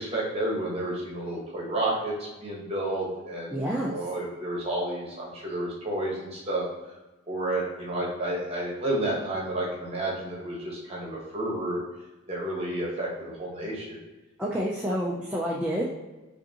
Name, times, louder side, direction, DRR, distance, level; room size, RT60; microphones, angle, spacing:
voice 1, 0.0-2.1 2.4-3.5 3.9-6.6 7.3-11.8 12.3-14.0, right 1 dB, 30° right, -3 dB, 1.0 m, -30 dB
voice 2, 3.5-4.0 14.4-15.9, equal, 5° right, -6 dB, 0.3 m, -28 dB
5.0 x 2.6 x 2.7 m, 1.1 s
head